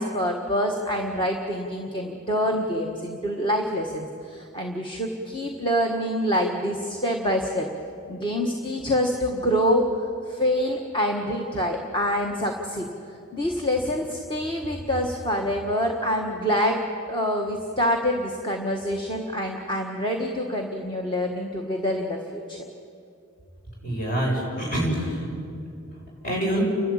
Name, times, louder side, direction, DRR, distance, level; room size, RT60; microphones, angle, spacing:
voice 1, 0.0-7.7 8.1-9.9 10.3-12.9 13.3-16.8 17.1-22.6, equal, 25° left, 1 dB, 1.5 m, -26 dB
voice 2, 23.8-25.3 26.2-26.6, right 1 dB, 45° left, -2 dB, 7.1 m, -26 dB
29.5 x 12.5 x 8.8 m, 2.5 s
head